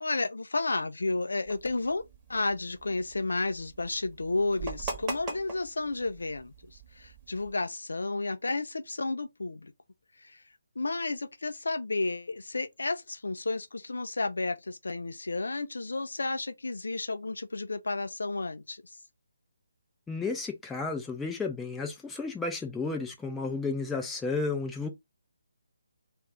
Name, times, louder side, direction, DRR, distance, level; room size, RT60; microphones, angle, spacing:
voice 1, 0.0-2.0 2.3-9.7 10.2-10.4 10.8-18.8, left 3 dB, 70° left, 0.4 m, -32 dB
sound 1, 1.5-7.5, right 3 dB, 20° right, 1.0 m, -42 dB
voice 2, 20.1-24.9, left 4 dB, 5° left, 0.5 m, -32 dB
2.4 x 2.4 x 3.2 m
figure-of-eight pair, 145°, 0 cm